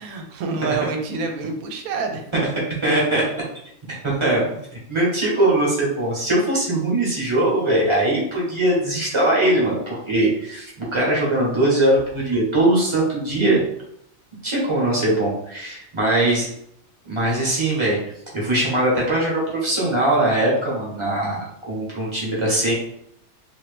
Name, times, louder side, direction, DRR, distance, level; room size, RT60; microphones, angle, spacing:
voice 1, 0.0-2.2, right 4 dB, 80° right, 4 dB, 1.0 m, -27 dB
voice 2, 2.8-3.2 4.0-4.4 4.9-13.6 14.4-16.5 17.0-18.0 18.3-22.7, right 1 dB, 25° right, -5 dB, 1.0 m, -21 dB
2.9 x 2.6 x 3.2 m, 0.72 s
omnidirectional pair, 1.5 m